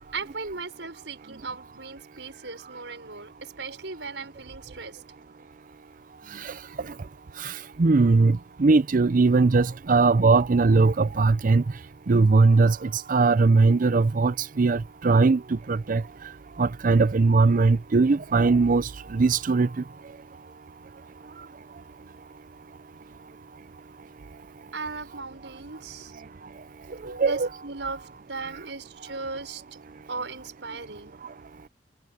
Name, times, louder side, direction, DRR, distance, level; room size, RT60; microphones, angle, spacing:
voice 1, 0.1-5.0 6.8-6.9 24.7-26.1 27.0-29.6 30.1-31.2, right 4 dB, 85° right, 6.2 m, -37 dB
voice 2, 7.8-11.6 12.1-16.0 16.6-19.7 27.2-27.5, right 3 dB, 50° right, 0.5 m, -20 dB
head